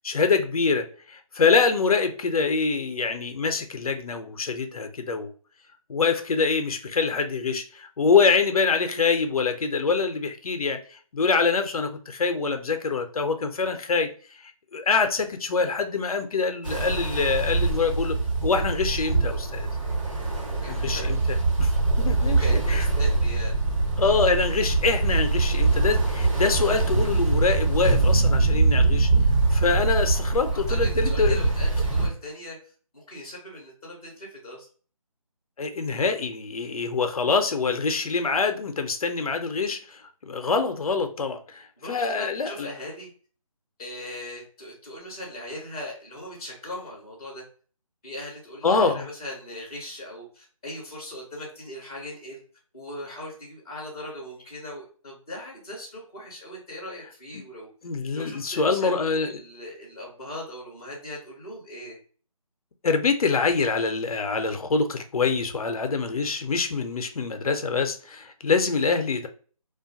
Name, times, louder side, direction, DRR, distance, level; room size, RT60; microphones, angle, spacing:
voice 1, 0.0-5.3 5.9-14.1 14.4-18.2 18.4-19.7 20.7-22.8 24.0-29.1 29.5-31.5 35.6-42.7 48.6-49.0 57.3-57.4 57.8-59.4 62.8-69.3, left 4 dB, 75° left, 7 dB, 0.5 m, -25 dB
Ocean, 16.6-32.1, right 3 dB, 60° right, 1.1 m, -23 dB
voice 2, 20.6-21.1 22.2-23.6 30.5-32.6 32.9-34.6 41.8-43.1 43.8-47.4 48.0-52.4 52.7-57.7 58.1-62.0, left 1 dB, 5° left, -10 dB, 0.5 m, -39 dB
2.5 x 2.2 x 2.6 m, 0.41 s
figure-of-eight pair, 165°, 19 cm